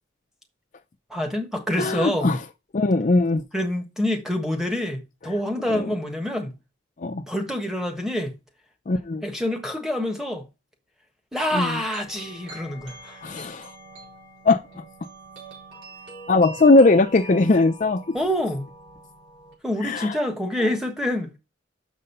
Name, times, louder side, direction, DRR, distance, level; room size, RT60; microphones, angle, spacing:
voice 1, 1.1-2.3 3.5-6.6 7.3-8.4 9.2-10.4 11.3-13.2 18.1-18.7 19.6-21.3, left 1 dB, ahead, 1.3 m, -26 dB
voice 2, 1.8-2.4 2.7-3.4 5.7-5.9 7.0-7.2 8.9-9.2 11.5-11.8 13.2-13.7 14.4-14.8 16.3-18.0 19.8-20.1, left 2 dB, 40° left, 0.5 m, -19 dB
sound 1, 11.8-19.6, right 2 dB, 80° right, 4.5 m, -44 dB
6.8 x 5.3 x 5.4 m
head